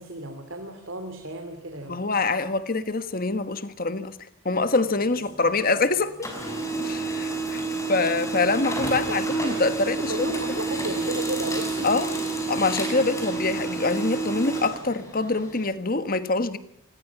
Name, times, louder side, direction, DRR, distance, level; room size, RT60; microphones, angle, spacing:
voice 1, 0.0-2.0 8.9-9.2 10.0-11.9, right 1 dB, 65° right, 2.7 m, -33 dB
voice 2, 1.9-4.2 4.4-6.3 6.8-10.1 11.8-12.1 12.5-16.6, left 3 dB, 40° left, 1.4 m, -25 dB
Printer, 4.5-5.8 6.1-15.6, right 3 dB, 15° left, 5.7 m, -29 dB
27.5 x 20.5 x 5.9 m
head